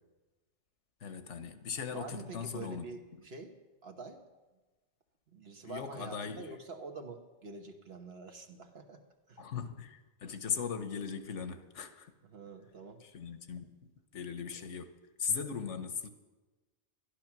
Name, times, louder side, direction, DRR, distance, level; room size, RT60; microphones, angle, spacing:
voice 1, 1.0-3.0 5.6-6.5 9.4-12.1 13.0-13.8 14.1-14.9 15.2-16.1, left 6 dB, 80° left, 9 dB, 1.2 m, -38 dB
voice 2, 1.9-3.6 3.8-4.3 5.3-9.0 9.3-9.5 12.2-13.0, right 3 dB, 60° right, 4 dB, 1.4 m, -46 dB
12.0 x 11.5 x 5.9 m, 1.2 s
omnidirectional pair, 1.2 m